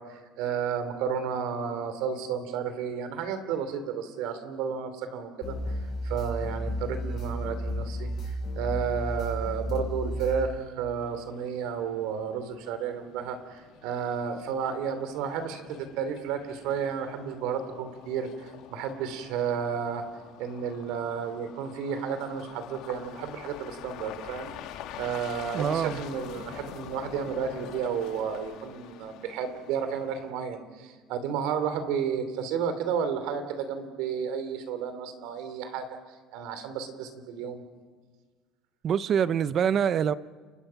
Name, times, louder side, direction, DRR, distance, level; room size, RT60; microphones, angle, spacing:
voice 1, 0.0-20.0 20.4-24.5 25.0-35.9 36.3-37.6, right 7 dB, 80° right, 3.0 m, -32 dB
sound 1, 5.4-10.4, equal, 40° left, 6.1 m, -33 dB
sound 2, 11.0-30.3, left 10 dB, 65° left, 1.7 m, -46 dB
voice 2, 25.5-26.0 38.8-40.1, right 8 dB, 40° right, 0.7 m, -25 dB
30.0 x 25.0 x 5.8 m
cardioid pair, 145°, 0 cm